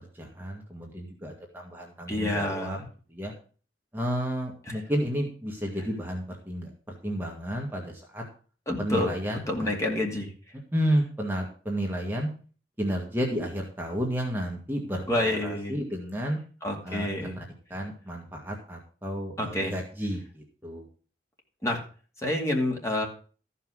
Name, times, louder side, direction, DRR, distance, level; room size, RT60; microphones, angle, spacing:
voice 1, 0.1-2.8 3.1-3.3 3.9-8.2 8.8-9.8 10.7-12.3 12.8-16.4 16.8-17.1 17.4-17.5 17.7-20.9, equal, 10° right, -1 dB, 1.8 m, -31 dB
voice 2, 2.1-2.8 4.7-4.8 8.7-9.1 9.5-10.3 15.1-15.7 16.6-17.3 19.4-19.7 21.6-21.8 22.2-23.1, left 1 dB, 20° left, 0 dB, 2.5 m, -28 dB
14.0 x 5.8 x 6.3 m, 0.40 s
head